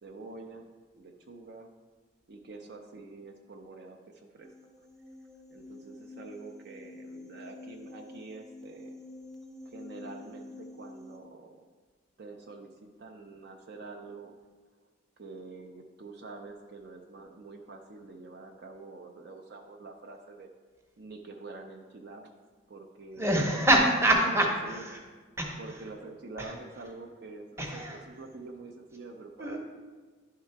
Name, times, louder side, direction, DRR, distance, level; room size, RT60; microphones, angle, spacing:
voice 1, 0.0-0.7 1.0-1.7 2.3-4.5 5.5-9.0 9.6-11.6 12.2-14.3 15.2-20.5 21.0-22.3 22.7-23.4 24.2-24.9 25.5-29.6, right 3 dB, 55° right, 2 dB, 0.5 m, -46 dB
sound 1, 4.4-11.2, left 2 dB, ahead, 0.3 m, -48 dB
voice 2, 23.2-25.0 25.4-25.6 26.4-26.5 27.6-28.0 29.4-29.6, right 1 dB, 15° right, 0 dB, 0.8 m, -25 dB
10.5 x 3.8 x 4.5 m, 1.4 s
head